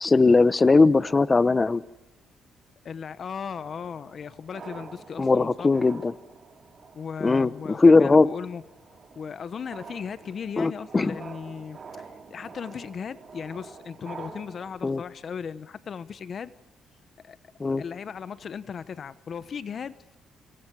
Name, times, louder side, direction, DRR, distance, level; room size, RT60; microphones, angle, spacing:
voice 1, 0.0-1.8 5.2-6.1 7.2-8.3 10.6-11.2 14.8-15.0 17.6-17.8, left 3 dB, 25° left, 0.9 m, -19 dB
voice 2, 2.8-5.7 6.9-8.6 9.1-16.5 17.2-17.4 17.8-20.2, left 6 dB, 50° left, 1.0 m, -37 dB
sound 1, 3.5-14.7, right 5 dB, 45° right, 2.6 m, -47 dB
29.0 x 27.0 x 4.8 m
cardioid pair, 90°, 0 cm